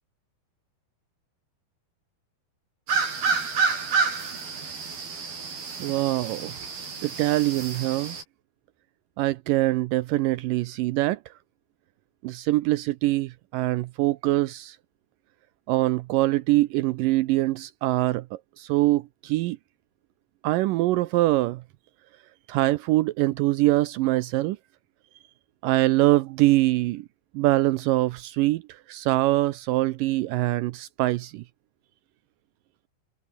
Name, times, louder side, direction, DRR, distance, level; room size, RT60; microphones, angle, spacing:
sound 1, 2.9-8.2, right 5 dB, 65° right, 7.7 m, -29 dB
voice 1, 5.8-6.5 7.0-8.2 9.2-11.2 12.2-14.8 15.7-18.2 18.6-19.6 20.4-21.6 22.5-24.6 25.6-27.1 27.3-28.6 28.9-31.4, right 17 dB, 85° right, 1.9 m, -23 dB
omnidirectional pair, 4.6 m